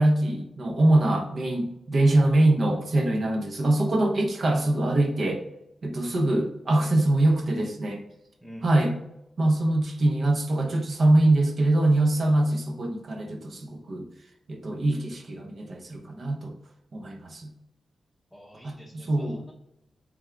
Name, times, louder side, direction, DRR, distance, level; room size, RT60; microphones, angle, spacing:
voice 1, 0.0-5.4 5.8-8.0 8.6-9.0 9.4-14.1 14.5-16.5 16.9-17.5 18.6-19.4, right 1 dB, 55° right, 2 dB, 0.9 m, -23 dB
voice 2, 8.4-8.9 18.3-19.5, equal, 5° left, -5 dB, 0.8 m, -46 dB
3.5 x 3.5 x 3.4 m, 0.86 s
cardioid pair, 90°, 0 cm